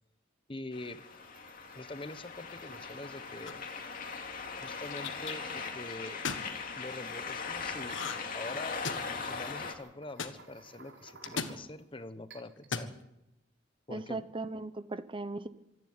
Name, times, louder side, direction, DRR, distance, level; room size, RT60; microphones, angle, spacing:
voice 1, 0.5-1.0 1.7-3.6 4.6-6.2 6.8-8.0 8.3-8.8 9.1-12.9 13.9-14.3, left 2 dB, 25° left, 12 dB, 1.0 m, -44 dB
sound 1, 0.7-9.7, left 5 dB, 45° left, 2.6 m, -40 dB
sound 2, 0.8-11.8 12.3-12.7, right 3 dB, 65° right, 4.5 m, -56 dB
sound 3, 3.4-3.8 4.6-5.3 6.1-6.5 7.9-8.3 8.6-9.2 10.2-10.3 11.2-11.6 12.6-12.9, left 5 dB, 80° left, 1.7 m, -36 dB
voice 2, 13.9-15.5, right 2 dB, 25° right, 13 dB, 0.8 m, -38 dB
25.5 x 11.0 x 9.6 m, 0.90 s
head